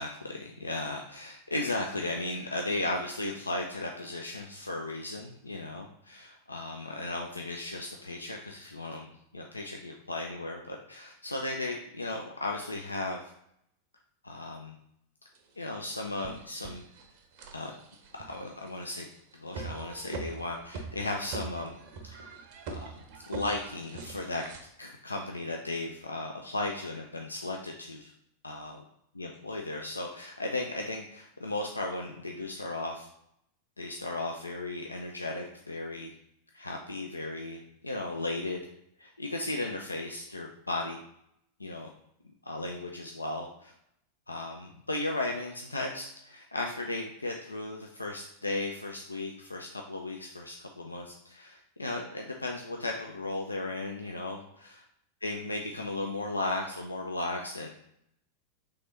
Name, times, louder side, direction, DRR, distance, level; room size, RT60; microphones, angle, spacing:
voice 1, 0.0-13.3 14.2-14.7 15.6-16.8 17.5-17.7 18.3-19.1 19.3-21.7 22.0-22.3 22.7-22.9 23.3-24.4 24.8-28.1 28.4-28.8 29.2-33.1 33.8-36.1 36.5-38.7 39.0-41.0 41.6-41.9 42.4-43.7 44.3-54.8 55.2-57.7, left 2 dB, 80° left, 1 dB, 0.3 m, -36 dB
sound 1, 15.3-15.4 16.0-24.6, right 4 dB, 50° right, 0.6 m, -43 dB
3.4 x 3.3 x 3.9 m, 0.75 s
figure-of-eight pair, 90°, 0 cm